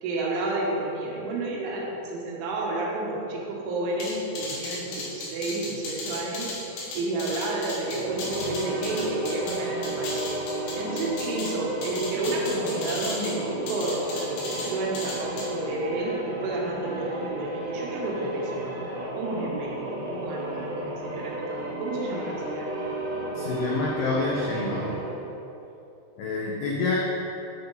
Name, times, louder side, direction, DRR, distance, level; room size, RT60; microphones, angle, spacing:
voice 1, 0.0-10.2 10.7-18.9 19.2-22.7, right 2 dB, 80° right, -3 dB, 3.5 m, -31 dB
sound 1, 4.0-9.6 9.8-11.5 11.8-13.3 13.7-14.7 14.9-15.4, left 3 dB, 65° left, 2.7 m, -35 dB
sound 2, 7.8-25.3, right 1 dB, 60° right, 2.7 m, -33 dB
voice 2, 23.3-25.0 26.2-27.0, left 3 dB, 85° left, -4 dB, 2.2 m, -28 dB
8.2 x 5.7 x 4.0 m, 2.8 s
omnidirectional pair, 5.6 m